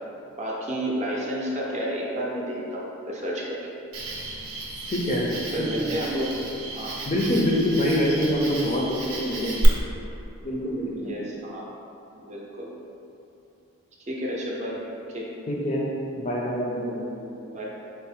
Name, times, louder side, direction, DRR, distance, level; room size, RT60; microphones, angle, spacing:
voice 1, 0.4-3.6 5.5-6.3 6.8-6.9 11.0-11.6 12.1-12.7 14.1-14.8 15.1-15.3 17.4-17.7, equal, 30° right, -4 dB, 0.5 m, -31 dB
Cricket, 3.9-9.6, right 2 dB, 85° right, 0.6 m, -35 dB
voice 2, 4.9-5.3 5.6-6.0 7.1-9.8 10.4-11.2 15.5-15.9 16.2-17.1, equal, 30° left, -3 dB, 0.4 m, -25 dB
4.6 x 2.0 x 4.2 m, 2.8 s
head